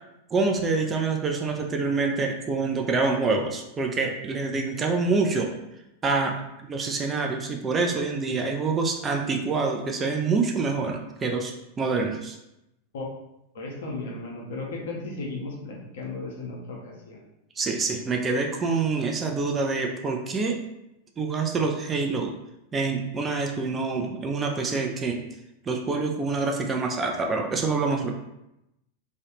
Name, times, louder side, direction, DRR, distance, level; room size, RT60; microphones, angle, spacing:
voice 1, 0.3-5.5 6.0-6.4 6.7-12.4 17.6-20.6 21.2-22.3 22.7-25.3 25.7-28.1, right 4 dB, 20° right, 2 dB, 0.3 m, -26 dB
voice 2, 13.5-17.2, left 3 dB, 55° left, -1 dB, 0.6 m, -35 dB
2.3 x 2.0 x 2.8 m, 0.88 s
figure-of-eight pair, 90°, 0 cm